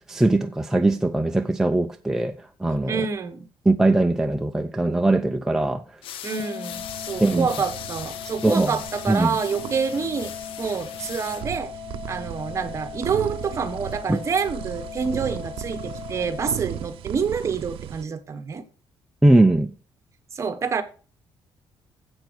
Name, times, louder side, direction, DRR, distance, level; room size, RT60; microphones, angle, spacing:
voice 1, 0.1-3.1 3.7-5.8 7.2-7.5 8.4-8.8 9.1-9.4 14.1-14.2 19.2-19.7, right 2 dB, 5° right, 0.4 m, -20 dB
voice 2, 2.9-3.5 6.2-11.7 12.1-18.6 20.3-20.8, right 6 dB, 35° right, 1.1 m, -27 dB
sound 1, 6.0-11.4, left 11 dB, 80° left, 0.6 m, -39 dB
Organ, 6.3-17.3, left 9 dB, 35° left, 0.7 m, -39 dB
sound 2, 6.7-18.0, right 13 dB, 85° right, 0.5 m, -37 dB
10.5 x 8.0 x 4.7 m
cardioid pair, 165°, 9 cm